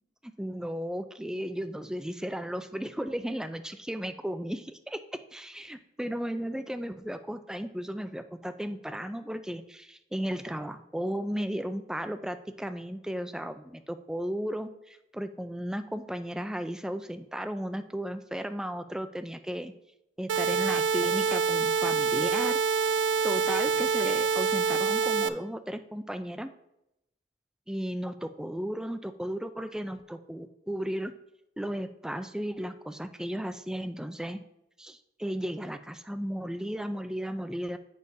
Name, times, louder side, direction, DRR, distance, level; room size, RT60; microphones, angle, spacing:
voice 1, 0.2-5.0 5.3-19.7 20.2-22.8 23.2-26.5 27.7-31.1 31.6-34.4 34.8-37.8, equal, 5° right, 8 dB, 0.3 m, -35 dB
sound 1, 20.3-25.3, right 5 dB, 80° right, 0.4 m, -26 dB
8.3 x 6.4 x 2.7 m, 0.85 s
head